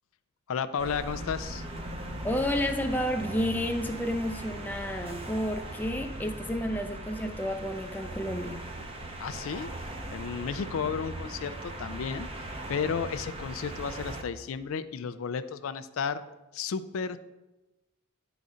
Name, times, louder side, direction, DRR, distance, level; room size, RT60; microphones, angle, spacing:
voice 1, 0.5-1.6 9.2-9.7 10.1-12.3 12.7-16.2 16.5-17.2, left 6 dB, 80° left, 12 dB, 0.4 m, -33 dB
sound 1, 0.8-14.2, right 1 dB, 25° right, 0.6 m, -39 dB
voice 2, 2.2-8.6, equal, 10° left, 5 dB, 0.4 m, -31 dB
9.4 x 4.0 x 4.9 m, 1.1 s
head